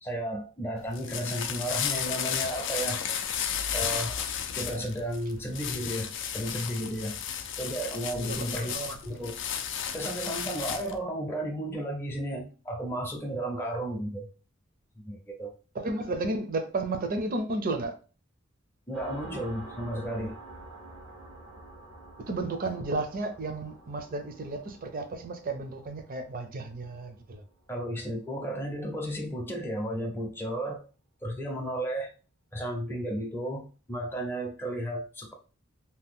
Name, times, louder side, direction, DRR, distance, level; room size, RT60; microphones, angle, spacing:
voice 1, 0.0-3.0 3.7-4.2 4.5-7.2 7.6-9.4 9.9-14.3 15.0-15.5 18.9-20.4 27.7-30.8 31.2-32.1 32.5-35.3, right 1 dB, 10° left, 0.6 m, -33 dB
sound 1, 0.8-11.0, left 8 dB, 65° left, 0.4 m, -33 dB
voice 2, 8.2-9.0 15.7-18.0 22.2-27.4, right 2 dB, 45° right, 0.5 m, -33 dB
sound 2, 18.9-28.2, right 2 dB, 80° right, 1.0 m, -48 dB
2.8 x 2.2 x 3.6 m
head